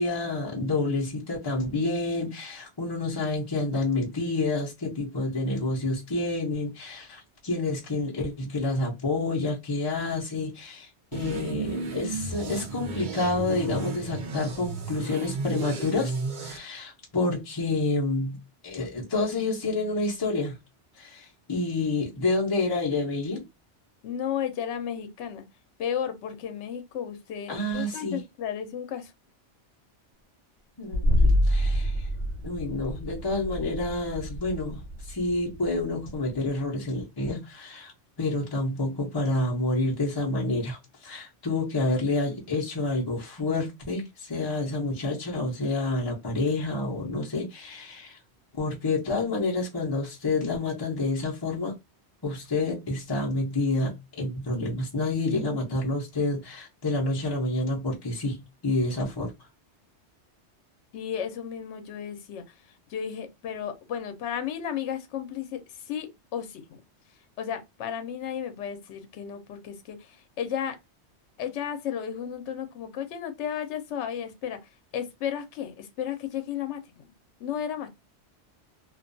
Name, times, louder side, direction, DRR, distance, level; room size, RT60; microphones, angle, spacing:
voice 1, 0.0-16.1 16.4-18.4 18.6-20.6 21.0-23.5 27.5-28.2 30.8-32.1 32.4-37.9 38.2-48.2 48.5-51.7 52.2-59.3, left 2 dB, 30° left, 0.5 m, -28 dB
sound 1, 11.1-16.6, right 4 dB, 55° right, 0.6 m, -33 dB
voice 2, 24.0-25.4 25.8-29.1 60.9-66.8 67.4-70.8 71.4-77.1 77.4-77.9, left 9 dB, 75° left, 0.9 m, -34 dB
sound 2, 30.9-36.5, left 1 dB, 80° right, 1.0 m, -27 dB
2.4 x 2.2 x 2.5 m
omnidirectional pair, 1.2 m